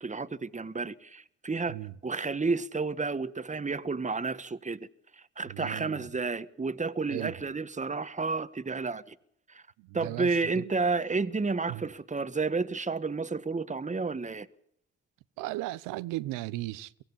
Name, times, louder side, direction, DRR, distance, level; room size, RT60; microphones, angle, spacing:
voice 1, 0.0-4.8 5.4-9.1 9.5-9.6 9.9-14.5, right 4 dB, 25° right, 1.4 m, -31 dB
voice 2, 5.5-6.1 7.1-7.3 9.9-10.3 10.5-10.7 11.7-11.8 15.4-17.0, right 17 dB, 85° right, 0.8 m, -36 dB
23.5 x 16.5 x 8.3 m
hypercardioid pair, 50°, 31 cm